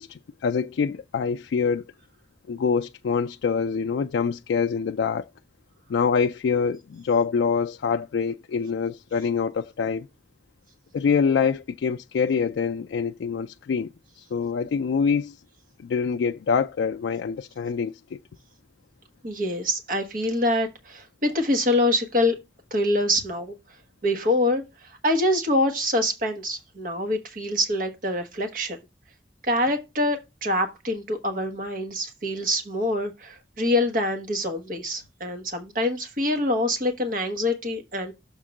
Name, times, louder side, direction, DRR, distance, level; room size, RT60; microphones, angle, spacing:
voice 1, 0.0-1.8 2.5-5.3 5.9-10.1 10.9-13.9 14.2-15.4 15.8-18.2, left 6 dB, 80° left, 0.3 m, -25 dB
voice 2, 19.2-22.4 22.7-23.5 24.0-28.8 29.4-38.1, left 1 dB, 50° right, 1.2 m, -25 dB
6.7 x 3.6 x 6.3 m
head